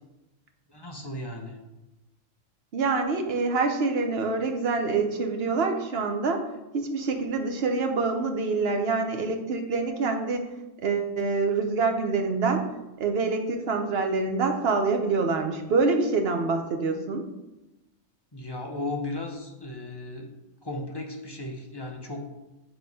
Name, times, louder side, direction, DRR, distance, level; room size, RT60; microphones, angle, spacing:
voice 1, 0.7-1.6 18.3-20.3 20.6-22.3, left 2 dB, 25° left, 1 dB, 0.7 m, -35 dB
voice 2, 2.7-6.4 6.7-10.5 10.8-17.3, right 4 dB, 55° right, 5 dB, 1.0 m, -26 dB
7.9 x 3.1 x 5.4 m, 0.98 s
omnidirectional pair, 1.3 m